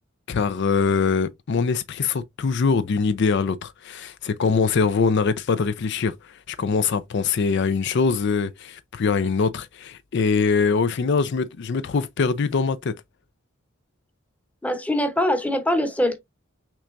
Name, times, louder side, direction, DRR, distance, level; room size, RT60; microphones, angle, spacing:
voice 1, 0.3-12.9, left 5 dB, 60° left, 0.4 m, -23 dB
voice 2, 14.6-16.2, left 1 dB, 5° left, 0.8 m, -23 dB
6.0 x 3.3 x 2.5 m
head